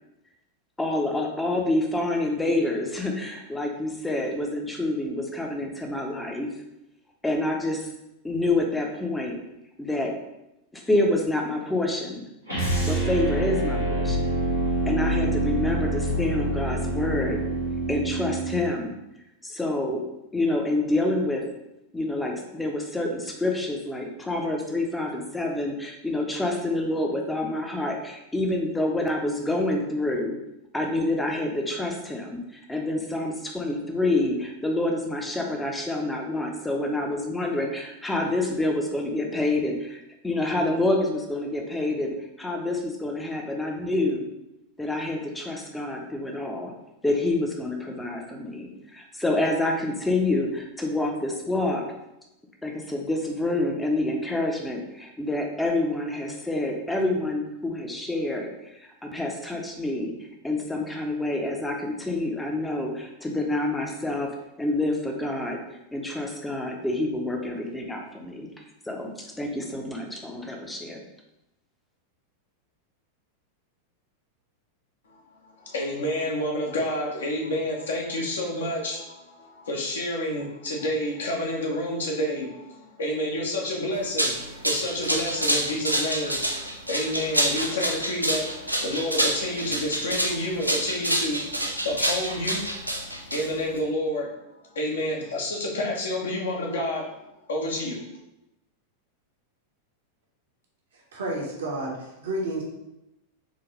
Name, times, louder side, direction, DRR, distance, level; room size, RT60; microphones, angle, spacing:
voice 1, 0.8-6.5 7.2-7.9 8.2-9.4 9.8-10.1 10.7-12.2 12.9-14.4 14.9-17.4 17.9-19.0 19.4-20.0 20.3-21.4 21.9-30.4 30.7-44.3 44.8-46.7 47.0-51.8 52.6-58.5 59.0-60.1 60.4-64.3 64.6-65.6 65.9-68.5 68.9-71.0, left 2 dB, 5° left, 1 dB, 0.6 m, -27 dB
sound 1, 12.5-18.6, right 1 dB, 90° left, 1.4 m, -26 dB
voice 2, 75.6-92.9 93.3-94.3 94.7-97.0 97.5-98.0, left 1 dB, 65° left, -2 dB, 0.9 m, -29 dB
sound 2, 83.9-93.8, right 1 dB, 90° right, 0.4 m, -27 dB
voice 3, 101.1-102.6, right 1 dB, 65° right, -2 dB, 0.9 m, -30 dB
3.8 x 2.5 x 3.0 m, 0.90 s
figure-of-eight pair, 90°, 0 cm